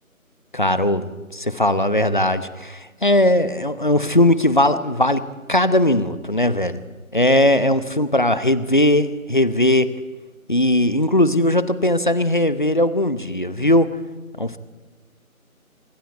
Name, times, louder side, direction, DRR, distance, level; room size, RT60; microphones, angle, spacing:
voice 1, 0.5-6.8 7.1-9.9 10.5-13.9 14.4-14.6, left 1 dB, 35° left, 14 dB, 0.9 m, -19 dB
26.5 x 22.0 x 4.5 m, 1.3 s
figure-of-eight pair, 165°, 43 cm